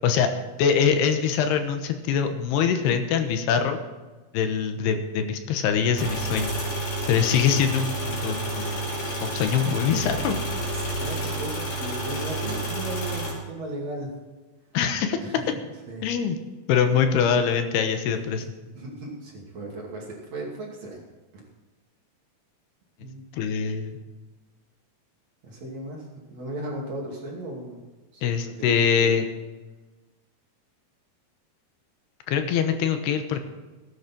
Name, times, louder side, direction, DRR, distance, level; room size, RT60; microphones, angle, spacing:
voice 1, 0.6-3.8 4.3-6.5 7.1-8.8 9.2-10.4 14.7-15.2 16.0-16.4 16.7-18.4 23.3-24.0 28.2-29.2 32.3-33.4, left 7 dB, 85° left, 7 dB, 3.1 m, -23 dB
sound 1, 5.9-13.3, right 1 dB, 45° left, 7.4 m, -30 dB
voice 2, 10.7-14.1 15.2-15.5 15.9-16.0 18.8-21.0 23.0-23.2 25.4-27.8 28.1-28.2 28.6-29.2, right 1 dB, 45° right, -2 dB, 3.4 m, -36 dB
18.0 x 10.5 x 4.5 m, 1.2 s
omnidirectional pair, 4.6 m